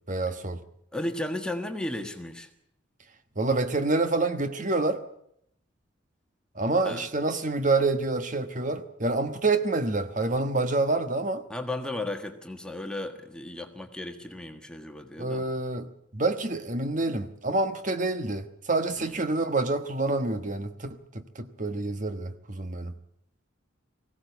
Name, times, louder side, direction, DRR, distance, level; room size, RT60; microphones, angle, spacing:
voice 1, 0.1-0.6 3.4-5.0 6.5-11.4 15.2-15.9 16.1-22.9, right 2 dB, 40° right, 1.2 m, -27 dB
voice 2, 0.9-2.5 6.8-7.0 11.5-15.4 19.0-19.2, left 1 dB, 5° left, 1.5 m, -34 dB
20.5 x 16.5 x 8.2 m
head